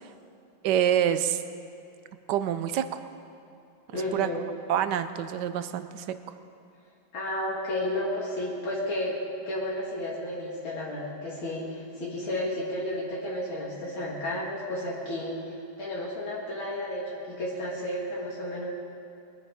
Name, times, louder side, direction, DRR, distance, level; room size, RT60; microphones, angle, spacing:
voice 1, 0.6-1.4 2.3-3.0 4.1-4.3 4.7-6.2, right 10 dB, 70° right, 11 dB, 1.0 m, -26 dB
voice 2, 3.9-4.4 7.1-9.1 9.5-18.7, left 1 dB, 70° left, -5 dB, 2.6 m, -32 dB
22.0 x 10.0 x 4.9 m, 2.6 s
omnidirectional pair, 2.4 m